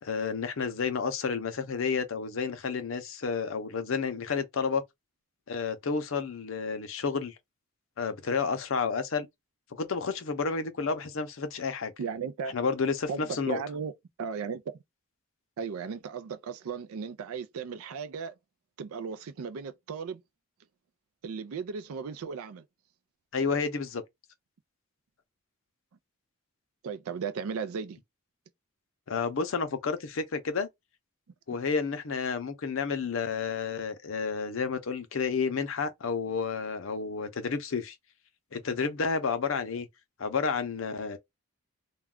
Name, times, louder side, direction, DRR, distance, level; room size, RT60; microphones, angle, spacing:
voice 1, 0.0-4.8 5.5-7.3 8.0-9.3 9.7-11.9 12.5-13.6 23.3-24.0 29.1-30.7 31.5-38.0 38.5-39.9 40.2-41.2, left 5 dB, 65° left, 0.5 m, -30 dB
voice 2, 12.0-12.6 13.1-13.9 14.2-14.6 15.6-18.3 18.8-20.2 21.2-22.6 26.8-28.0, right 6 dB, 80° right, 0.4 m, -36 dB
2.3 x 2.2 x 3.5 m
head